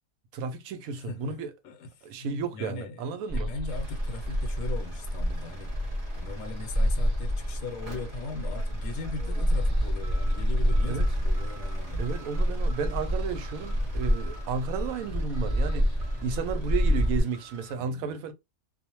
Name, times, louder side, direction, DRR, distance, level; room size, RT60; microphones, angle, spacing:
voice 1, 0.3-1.5 2.0-3.5 10.9-11.1 12.0-15.9 16.2-18.3, right 5 dB, 80° right, 1.0 m, -33 dB
voice 2, 0.9-5.8 6.2-12.1 17.7-18.2, left 3 dB, 70° left, 1.0 m, -39 dB
sound 1, 3.3-17.2, equal, 30° left, 0.5 m, -28 dB
sound 2, 3.7-17.7, right 2 dB, 35° right, 0.6 m, -49 dB
2.5 x 2.1 x 2.9 m
omnidirectional pair, 1.5 m